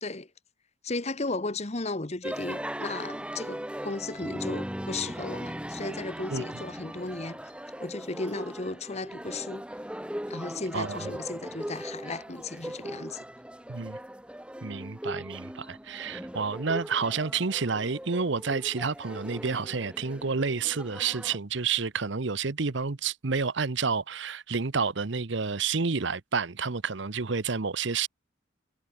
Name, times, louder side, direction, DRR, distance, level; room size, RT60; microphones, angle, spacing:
voice 1, 0.8-7.4 7.8-9.7 10.3-13.2, left 3 dB, 35° left, 1.2 m, -35 dB
sound 1, 2.2-21.4, equal, 5° right, 1.9 m, -39 dB
voice 2, 10.7-11.1 13.7-14.0 14.6-28.1, right 5 dB, 65° right, 0.9 m, -29 dB
head